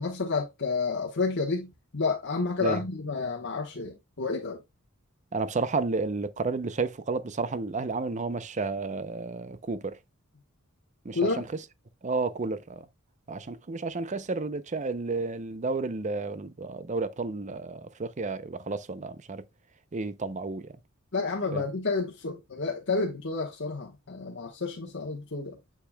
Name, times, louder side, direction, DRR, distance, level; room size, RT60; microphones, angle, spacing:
voice 1, 0.0-4.6 11.1-11.5 21.1-25.6, left 4 dB, 60° left, 1.2 m, -30 dB
voice 2, 5.3-10.0 11.0-11.4 12.0-12.9 13.3-19.4 19.9-20.7 21.5-21.6, right 3 dB, 35° right, 0.6 m, -31 dB
7.2 x 7.0 x 2.2 m
head